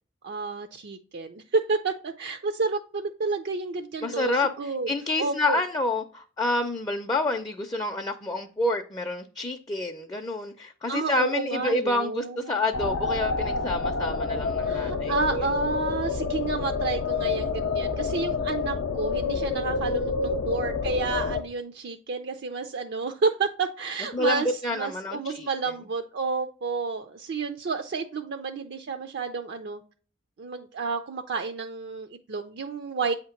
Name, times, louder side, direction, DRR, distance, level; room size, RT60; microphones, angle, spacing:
voice 1, 0.2-4.9 5.2-5.6 10.9-12.6 14.6-29.8 30.4-33.1, right 4 dB, 60° right, 0.5 m, -30 dB
voice 2, 4.0-15.5 24.1-25.5, left 2 dB, 20° left, 0.5 m, -28 dB
sound 1, 12.7-21.4, left 4 dB, 75° left, 0.6 m, -28 dB
8.1 x 2.9 x 5.7 m
head